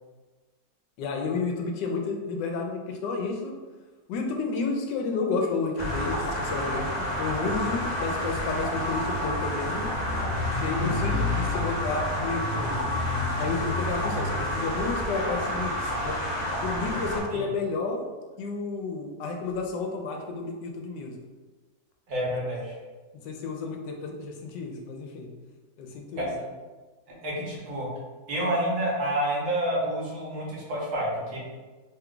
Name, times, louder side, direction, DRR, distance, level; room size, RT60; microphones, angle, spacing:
voice 1, 1.0-3.5 4.1-9.9 10.4-12.9 13.4-16.2 16.6-18.0 18.4-21.1 23.2-25.3 25.8-26.5, left 4 dB, 85° left, 2 dB, 1.2 m, -31 dB
sound 1, 5.8-17.2, equal, 40° left, 0.6 m, -30 dB
sound 2, 9.9-14.5, left 4 dB, 70° left, 0.8 m, -31 dB
voice 2, 22.1-22.7 26.1-26.2 27.2-27.9 28.3-31.4, right 1 dB, 65° right, -4 dB, 1.4 m, -29 dB
3.3 x 2.3 x 3.7 m, 1.3 s
omnidirectional pair, 1.8 m